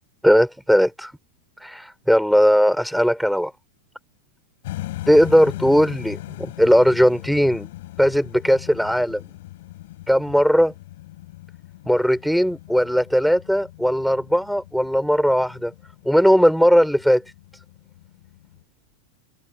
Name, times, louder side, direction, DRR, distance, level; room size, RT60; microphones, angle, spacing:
voice 1, 0.2-1.1 1.6-3.5 5.1-7.7 8.0-9.2 10.1-10.7 11.9-15.7 16.0-17.2, equal, ahead, 4.3 m, -18 dB
sound 1, 4.6-18.6, left 16 dB, 70° left, 6.5 m, -39 dB
open air
hypercardioid pair, 120°, 0 cm